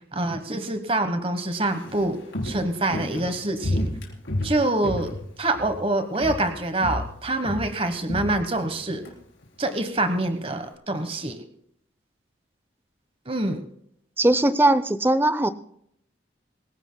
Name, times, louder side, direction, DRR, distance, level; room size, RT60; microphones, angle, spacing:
voice 1, 0.1-3.9 4.4-5.1 5.4-9.0 9.6-11.5 13.3-13.7, right 2 dB, 30° right, 8 dB, 1.2 m, -26 dB
Walk footsteps, 1.6-5.9 6.1-6.5 6.8-9.1 9.4-9.5, left 1 dB, 85° left, 4.0 m, -31 dB
voice 2, 14.2-15.5, right 1 dB, 10° right, 13 dB, 0.6 m, -19 dB
25.5 x 15.5 x 2.2 m, 0.71 s
head